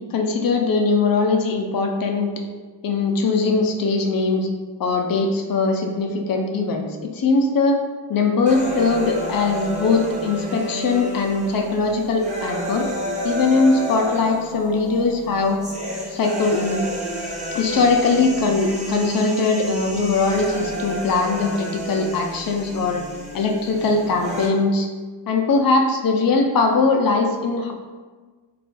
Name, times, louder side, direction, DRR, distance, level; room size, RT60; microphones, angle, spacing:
voice 1, 0.1-2.3 2.8-4.5 4.8-7.8 8.1-12.9 13.2-15.6 16.1-16.8 17.5-23.0 23.3-24.9 25.3-27.7, left 3 dB, 50° left, 3 dB, 0.5 m, -20 dB
sound 1, 8.5-24.5, right 1 dB, 15° right, 0.6 m, -30 dB
2.4 x 2.4 x 3.7 m, 1.4 s
wide cardioid pair, 130°, 45 cm